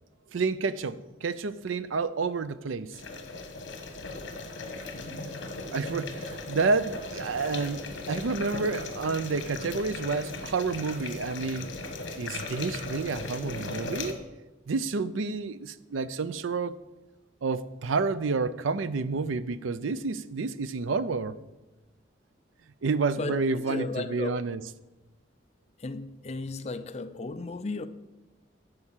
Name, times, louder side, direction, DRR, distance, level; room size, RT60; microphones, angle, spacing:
voice 1, 0.3-3.0 5.7-11.7 12.2-14.2 14.7-16.7 17.4-21.4 22.8-24.6, right 4 dB, 90° right, 0.5 m, -29 dB
sound 1, 2.9-14.1, left 3 dB, 70° left, 1.3 m, -38 dB
voice 2, 23.7-24.4 25.8-27.9, left 3 dB, 35° left, 0.5 m, -34 dB
10.5 x 4.9 x 7.3 m
head